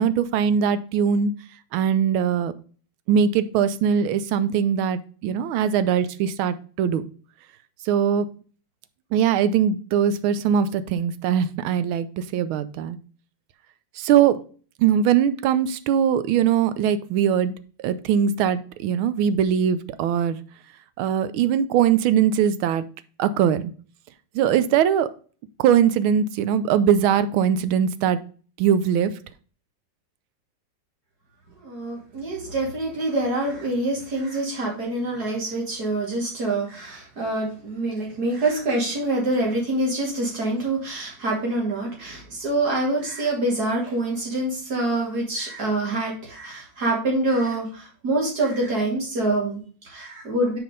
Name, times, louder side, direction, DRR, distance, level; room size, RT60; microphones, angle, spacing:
voice 1, 0.0-1.3 1.7-2.5 3.1-7.0 7.8-8.3 9.1-13.0 14.0-14.4 14.8-17.5 17.8-20.4 21.0-22.8 23.2-23.7 24.3-25.1 25.6-28.2 28.6-29.1, right 8 dB, 90° right, 14 dB, 1.5 m, -21 dB
voice 2, 31.6-50.6, right 2 dB, 50° right, -3 dB, 3.0 m, -26 dB
6.4 x 4.9 x 5.3 m, 0.41 s
omnidirectional pair, 2.2 m